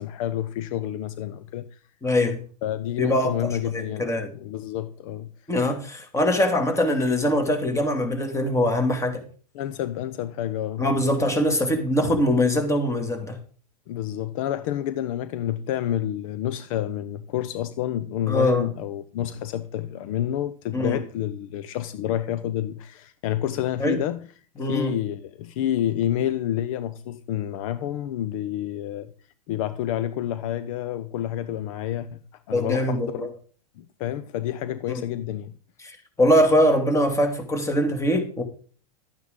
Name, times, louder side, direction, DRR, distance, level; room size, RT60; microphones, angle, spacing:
voice 1, 0.0-1.7 2.6-4.1 4.4-5.3 9.5-10.8 12.0-12.1 13.9-24.2 24.6-29.1 29.5-32.2 32.5-33.3 33.8-35.5, left 11 dB, 60° left, 0.8 m, -29 dB
voice 2, 2.0-2.4 3.0-4.3 5.5-9.2 10.8-13.4 18.3-18.7 20.7-21.0 23.8-24.0 24.6-24.9 32.5-33.3 34.9-35.0 35.8-38.4, left 1 dB, 15° left, 2.5 m, -23 dB
12.0 x 9.3 x 3.8 m
hypercardioid pair, 105°, 20 cm